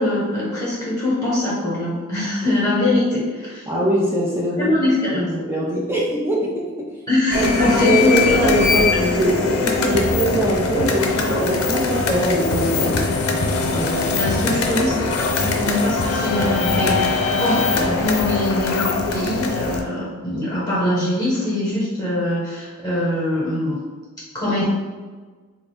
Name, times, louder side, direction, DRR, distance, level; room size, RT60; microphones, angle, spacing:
voice 1, 0.0-3.7 4.6-5.3 7.1-8.5 14.2-23.8 24.3-24.7, left 1 dB, 15° left, -8 dB, 1.1 m, -22 dB
voice 2, 3.7-4.7 5.1-6.9 7.3-13.2 13.7-14.1, right 1 dB, 10° right, -4 dB, 0.4 m, -22 dB
sound 1, 7.3-19.8, left 4 dB, 85° left, 0.5 m, -22 dB
4.0 x 2.5 x 3.3 m, 1.4 s
head